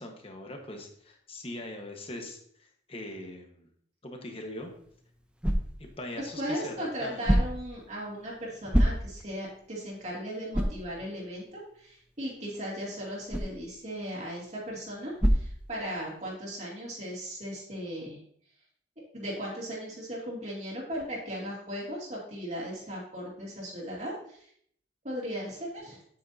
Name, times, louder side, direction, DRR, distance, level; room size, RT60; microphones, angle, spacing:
voice 1, 0.0-3.7 4.0-4.7 5.8-7.3, left 1 dB, 30° left, 3 dB, 1.3 m, -41 dB
sound 1, 4.5-16.3, equal, 5° right, 0.6 m, -32 dB
voice 2, 6.2-18.2 19.1-24.4 25.0-26.0, equal, 35° right, -4 dB, 2.4 m, -37 dB
8.8 x 8.3 x 2.7 m, 0.64 s
head